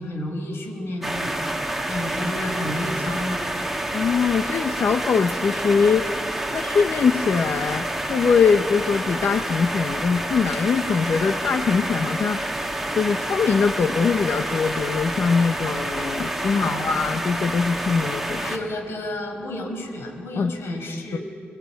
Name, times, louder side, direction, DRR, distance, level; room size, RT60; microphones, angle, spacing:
voice 1, 0.0-1.4 1.8-3.5 16.5-17.0 18.4-21.2, left 1 dB, 85° left, 2 dB, 5.4 m, -31 dB
sound 1, 1.0-18.6, right 1 dB, 5° right, 1.9 m, -28 dB
voice 2, 3.9-6.1 6.5-12.4 13.0-18.4 20.4-20.5 21.1-21.2, left 5 dB, 60° left, 7 dB, 0.8 m, -22 dB
26.5 x 20.5 x 9.2 m, 2.4 s
wide cardioid pair, 175°, 4 cm